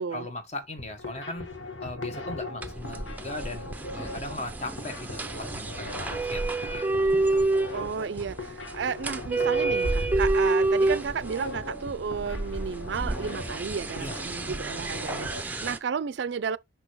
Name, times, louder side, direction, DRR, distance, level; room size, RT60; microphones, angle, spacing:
voice 1, 0.0-1.5 1.8-6.4 6.7-7.2 14.0-14.2, left 2 dB, 35° left, 1.3 m, -38 dB
sound 1, 0.6-15.4, left 2 dB, 85° left, 1.4 m, -40 dB
sound 2, 2.6-15.8, right 2 dB, 10° right, 0.5 m, -29 dB
voice 2, 7.7-16.6, right 6 dB, 65° right, 0.4 m, -32 dB
6.1 x 5.7 x 3.0 m
head